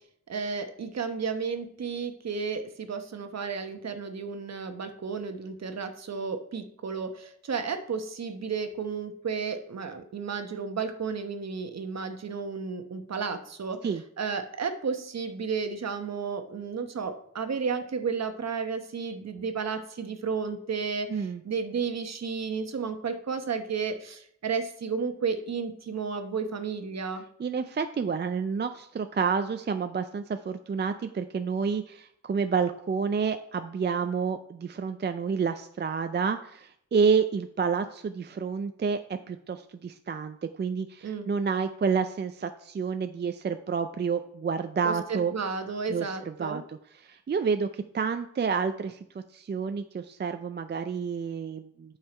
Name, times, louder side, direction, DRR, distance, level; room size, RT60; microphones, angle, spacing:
voice 1, 0.3-13.8 14.2-27.2 41.0-41.3 44.8-46.6, right 5 dB, 60° right, 7 dB, 1.0 m, -32 dB
voice 2, 21.1-21.4 27.4-45.3 45.9-46.1 46.4-46.8 47.0-52.0, right 5 dB, 35° right, 8 dB, 0.5 m, -29 dB
8.8 x 5.7 x 4.4 m, 0.68 s
cardioid pair, 80°, 30 cm